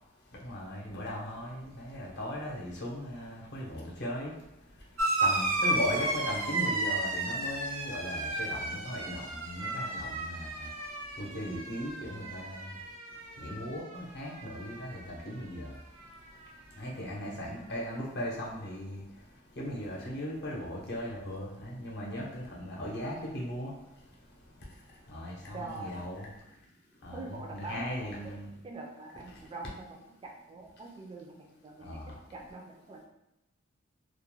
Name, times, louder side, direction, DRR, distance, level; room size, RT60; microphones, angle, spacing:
voice 1, 0.4-4.3 5.2-10.7 11.2-12.7 13.4-15.7 16.8-19.0 19.6-23.7 25.1-26.3 27.0-28.5 31.8-32.1, equal, 55° left, -3 dB, 0.7 m, -38 dB
sound 1, 5.0-14.0 14.3-15.0 16.1-16.2, right 2 dB, 85° right, 0.5 m, -33 dB
voice 2, 25.5-26.0 27.1-28.3 28.6-33.0, right 2 dB, 25° right, 1 dB, 0.3 m, -44 dB
2.3 x 2.1 x 3.0 m, 0.89 s
head